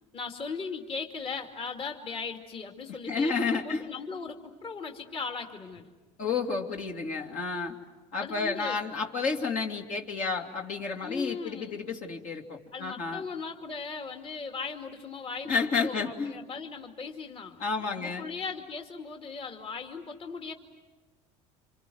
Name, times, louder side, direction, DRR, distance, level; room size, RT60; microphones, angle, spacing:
voice 1, 0.1-5.9 8.2-8.8 11.0-11.8 12.7-20.5, left 5 dB, 35° left, 3 dB, 2.5 m, -38 dB
voice 2, 2.9-3.9 6.2-7.8 8.1-13.2 15.4-16.3 17.6-18.3, left 4 dB, 55° left, 1 dB, 2.7 m, -31 dB
28.0 x 26.5 x 7.9 m, 1.3 s
supercardioid pair, 85°, 16 cm